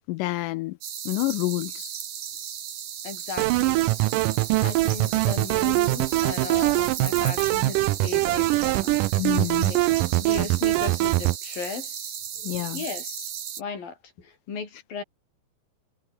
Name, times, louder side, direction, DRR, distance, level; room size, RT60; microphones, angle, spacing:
voice 1, 0.1-0.8 1.1-1.9 9.2-9.8 12.4-12.8, left 20 dB, 85° left, 1.8 m, -28 dB
sound 1, 0.8-13.6, right 9 dB, 60° right, 3.5 m, -36 dB
voice 2, 3.0-3.9 4.6-9.0 9.6-9.8 10.1-12.2 12.7-13.3 13.6-15.0, left 5 dB, 65° left, 6.2 m, -36 dB
sound 2, 3.4-11.4, right 20 dB, 85° right, 1.9 m, -23 dB
omnidirectional pair, 4.3 m